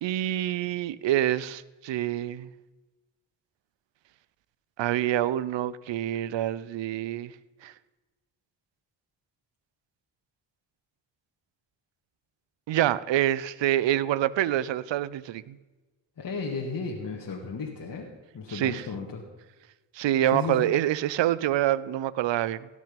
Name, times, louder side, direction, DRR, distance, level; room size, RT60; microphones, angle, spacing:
voice 1, 0.0-2.5 4.8-7.3 7.6-7.7 12.7-15.6 18.5-18.8 20.0-22.7, right 12 dB, 65° right, 19 dB, 0.7 m, -26 dB
voice 2, 16.2-18.1 18.3-19.2 20.3-20.7, left 4 dB, 45° left, -1 dB, 1.9 m, -34 dB
17.0 x 6.4 x 5.3 m, 1.2 s
supercardioid pair, 45°, 48 cm